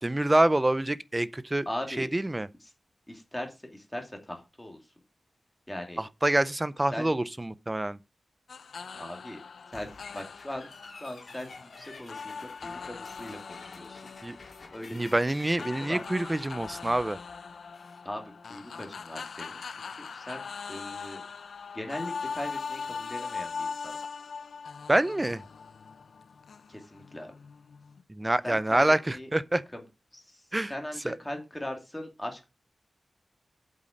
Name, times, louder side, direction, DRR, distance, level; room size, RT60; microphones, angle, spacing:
voice 1, 0.0-1.7 2.0-2.5 6.0-8.0 14.2-14.4 14.9-17.2 24.9-25.4 28.1-29.6 30.5-30.7 31.0-31.1, right 1 dB, 15° right, 0.5 m, -26 dB
voice 2, 1.7-2.1 3.1-4.8 5.7-6.0 6.9-7.1 8.9-9.4 9.7-10.7 11.0-14.1 14.7-15.2 15.6-16.0 18.0-21.2 21.7-24.0 26.7-27.3 28.4-29.3 29.7-29.8 30.1-30.4 30.7-32.5, left 1 dB, 10° left, 2.6 m, -39 dB
sound 1, 8.5-28.0, left 5 dB, 70° left, 0.5 m, -41 dB
sound 2, 9.7-18.1, left 3 dB, 50° left, 2.7 m, -50 dB
8.1 x 7.5 x 5.1 m
wide cardioid pair, 170°, 0 cm